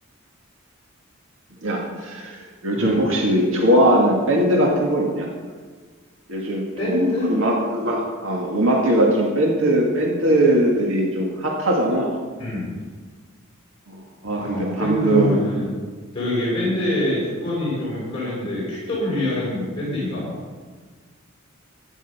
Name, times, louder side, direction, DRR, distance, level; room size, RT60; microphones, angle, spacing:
voice 1, 1.6-5.3 6.3-12.2 13.9-15.3 16.6-16.8, right 1 dB, 65° right, -1 dB, 1.9 m, -20 dB
voice 2, 6.8-7.3 12.4-12.7 14.3-15.7 16.1-20.2, left 1 dB, 25° left, -8 dB, 4.8 m, -25 dB
14.0 x 10.0 x 5.7 m, 1.5 s
head